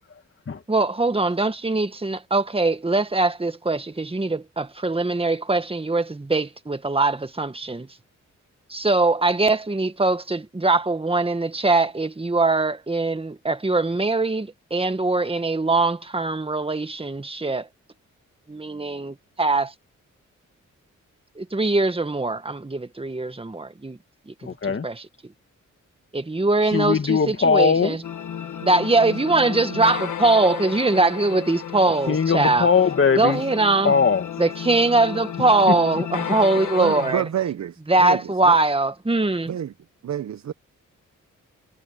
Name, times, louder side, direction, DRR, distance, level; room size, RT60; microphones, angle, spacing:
voice 1, 0.7-7.9 8.7-17.7 18.5-19.7 21.4-24.0 24.3-24.4 24.8-25.1 26.1-28.0 28.6-32.7 33.1-33.9 34.4-37.2 37.9-39.5, right 3 dB, 20° right, 1.8 m, -22 dB
voice 2, 24.4-24.9 26.7-28.0 32.1-33.4 33.8-34.3, left 5 dB, 45° left, 2.0 m, -20 dB
sound 1, 28.0-37.1, left 9 dB, 75° left, 1.7 m, -33 dB
voice 3, 36.8-38.6 39.5-39.7 40.0-40.5, right 10 dB, 65° right, 0.9 m, -28 dB
cardioid pair, 65°, 30 cm